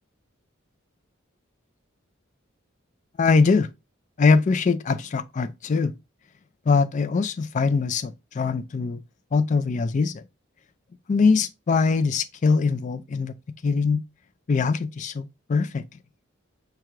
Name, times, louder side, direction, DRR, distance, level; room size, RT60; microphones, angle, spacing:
voice 1, 3.2-3.7 4.2-5.9 6.7-9.0 9.3-10.2 11.1-13.3 13.6-14.0 14.5-15.8, left 4 dB, 35° left, 0.3 m, -22 dB
4.5 x 2.3 x 3.6 m
head